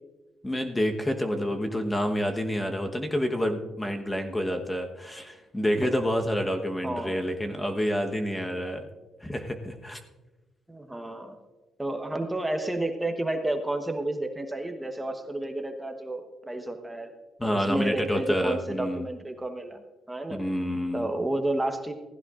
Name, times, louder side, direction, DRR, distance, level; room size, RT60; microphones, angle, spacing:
voice 1, 0.4-8.9 9.2-10.0 17.4-19.1 20.3-21.1, equal, 15° left, 4 dB, 1.1 m, -28 dB
voice 2, 6.8-7.3 10.7-11.4 11.8-17.1 17.4-19.8 20.1-20.4 20.9-21.9, right 1 dB, 10° right, 5 dB, 1.1 m, -31 dB
16.0 x 15.0 x 2.5 m, 1.2 s
cardioid pair, 90°, 0 cm